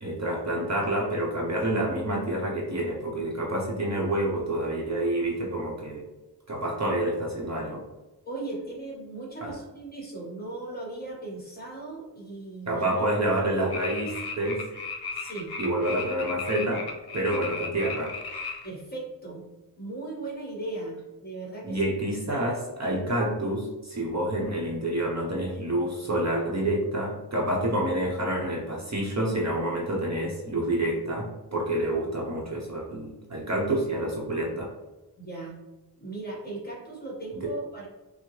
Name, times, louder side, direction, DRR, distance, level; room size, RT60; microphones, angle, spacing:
voice 1, 0.0-6.0 6.5-7.8 9.4-9.5 12.7-14.7 15.6-18.2 21.6-34.7 37.4-37.5, right 1 dB, 40° right, -3 dB, 0.8 m, -28 dB
voice 2, 8.2-13.1 13.6-13.7 15.1-15.5 18.6-19.4 19.8-21.8 35.2-35.6 36.0-37.9, right 2 dB, 25° left, -3 dB, 1.4 m, -37 dB
sound 1, 13.7-18.7, left 4 dB, 65° left, 0.8 m, -35 dB
5.8 x 2.1 x 3.1 m, 1.0 s
wide cardioid pair, 125°, 41 cm